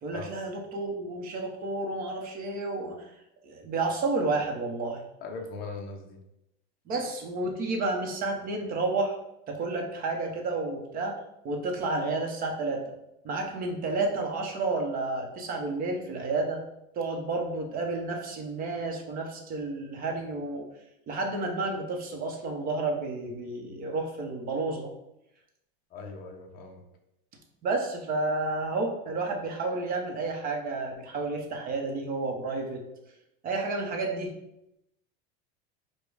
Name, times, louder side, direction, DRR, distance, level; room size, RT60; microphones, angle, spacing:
voice 1, 0.0-3.1 3.4-5.0 6.9-9.2 9.5-11.2 11.4-12.9 13.2-16.6 16.9-20.6 21.1-24.9 27.6-32.8 33.4-34.3, right 3 dB, 30° right, 2 dB, 0.8 m, -31 dB
voice 2, 5.2-6.2 25.9-26.8, left 3 dB, 30° left, 2 dB, 0.7 m, -40 dB
5.0 x 2.2 x 4.8 m, 0.84 s
supercardioid pair, 150°, 30 cm